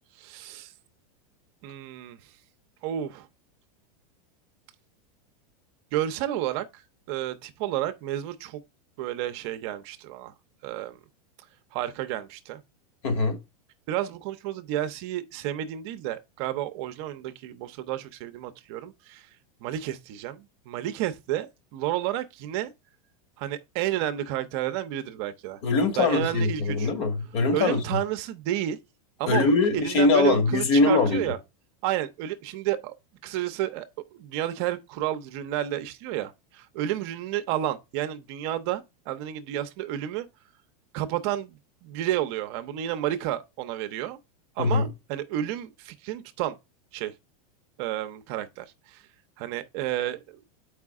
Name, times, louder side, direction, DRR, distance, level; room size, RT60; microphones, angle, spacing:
voice 1, 0.2-0.7 1.6-2.2 2.8-3.3 5.9-8.6 9.0-10.3 10.6-11.0 11.7-12.6 13.9-19.3 19.6-21.5 21.7-22.7 23.4-25.6 26.0-26.9 27.5-28.8 29.2-31.4 31.8-32.9 33.2-33.9 34.1-40.3 40.9-44.2 44.6-46.6 46.9-47.1 47.8-49.0 49.4-50.4, right 12 dB, 45° right, 0.7 m, -31 dB
voice 2, 13.0-13.4 25.6-27.8 29.3-31.3 44.6-44.9, left 3 dB, 50° left, 2.5 m, -22 dB
7.4 x 4.8 x 3.5 m
supercardioid pair, 160°, 19 cm